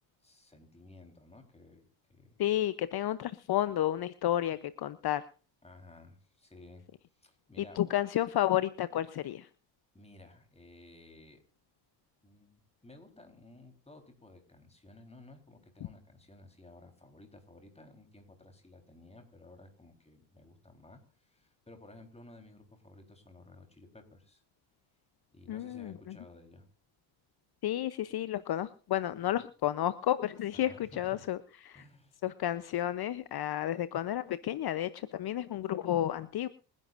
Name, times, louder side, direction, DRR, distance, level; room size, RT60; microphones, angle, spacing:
voice 1, 0.2-2.4 5.6-6.9 7.2-7.9 9.9-11.4 12.2-24.4 25.3-26.7 29.1-29.4 30.5-31.2 31.7-32.2, left 2 dB, 15° left, 5 dB, 4.0 m, -55 dB
voice 2, 2.4-5.2 7.6-9.5 25.5-26.1 27.6-31.4 31.6-31.8 32.2-36.5, left 12 dB, 55° left, 14 dB, 0.8 m, -31 dB
26.5 x 11.0 x 2.6 m, 0.38 s
cardioid pair, 105°, 46 cm